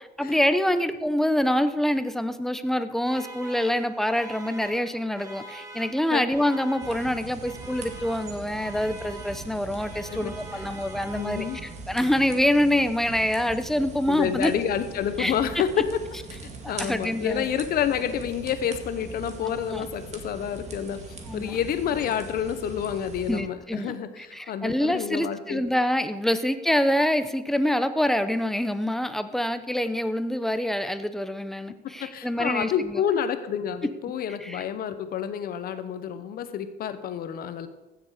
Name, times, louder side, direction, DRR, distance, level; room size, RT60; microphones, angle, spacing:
voice 1, 0.2-14.5 15.2-15.4 16.6-17.5 19.5-19.8 21.3-21.6 23.3-33.0 34.4-34.6, left 1 dB, ahead, 10 dB, 0.7 m, -26 dB
sound 1, 3.0-12.1, right 1 dB, 20° right, 1.8 m, -44 dB
sound 2, 6.8-23.4, right 3 dB, 40° right, 2.0 m, -41 dB
voice 2, 10.1-10.7 11.1-11.6 14.1-16.0 16.7-25.6 32.0-37.7, left 8 dB, 65° left, 11 dB, 1.0 m, -29 dB
15.0 x 7.2 x 5.0 m, 1.1 s
cardioid pair, 110°, 17 cm